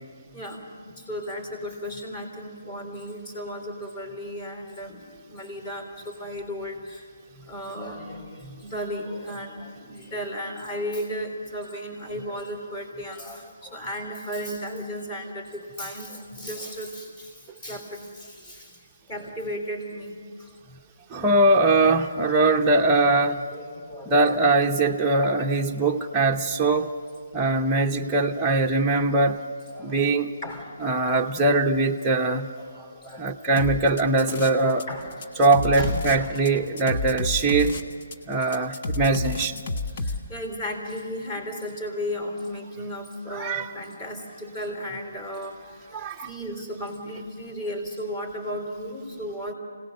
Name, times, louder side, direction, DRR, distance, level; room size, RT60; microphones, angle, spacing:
voice 1, 0.3-0.6 1.0-5.0 5.3-7.0 7.5-18.7 19.1-20.5 23.5-24.4 25.0-25.2 29.7-30.0 30.4-30.7 32.6-33.3 34.9-35.3 35.8-36.3 40.0-45.9 46.2-49.5, equal, 25° left, 4 dB, 3.8 m, -35 dB
voice 2, 21.1-23.4 24.1-26.9 27.3-29.4 29.8-30.3 30.8-32.5 33.2-34.9 35.4-37.8 38.3-39.6 43.3-43.7 45.9-46.3, right 2 dB, 10° right, -1 dB, 0.8 m, -22 dB
sound 1, 33.6-34.8 35.1-40.2, left 2 dB, 40° left, 1.3 m, -30 dB
26.0 x 18.0 x 6.6 m, 2.1 s
hypercardioid pair, 155°, 0 cm